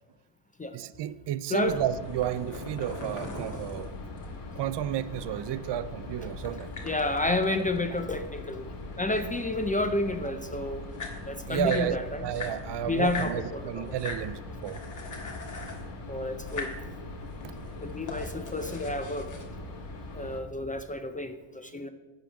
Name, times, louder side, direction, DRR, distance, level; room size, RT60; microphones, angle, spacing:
voice 1, 0.7-3.9 4.6-6.7 11.5-14.8 17.4-17.5, right 11 dB, 60° right, 0.5 m, -32 dB
sound 1, 1.6-20.4, left 2 dB, 55° left, 1.7 m, -41 dB
sound 2, 2.1-4.5 6.4-8.5 8.7-10.0 10.5-10.6 10.8-11.9 12.3-13.4 13.9-14.3 14.6-15.9 16.4-16.8 17.3-19.4, left 3 dB, 35° left, 1.6 m, -40 dB
voice 2, 6.8-8.7 9.0-10.8 11.2-12.3 12.9-13.9 16.1-16.7 17.8-19.3 20.1-21.9, left 2 dB, 20° left, 0.4 m, -30 dB
10.5 x 3.9 x 7.0 m
cardioid pair, 120°, 49 cm